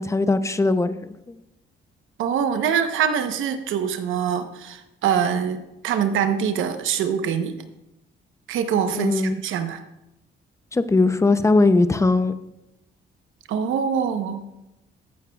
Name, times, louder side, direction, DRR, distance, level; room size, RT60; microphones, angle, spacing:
voice 1, 0.0-1.4 8.9-9.4 10.7-12.3, left 3 dB, 15° left, 12 dB, 0.6 m, -20 dB
voice 2, 2.2-7.6 8.5-9.8 13.5-14.4, right 7 dB, 80° right, 8 dB, 0.9 m, -24 dB
14.0 x 9.0 x 2.3 m, 0.91 s
cardioid pair, 90°, 20 cm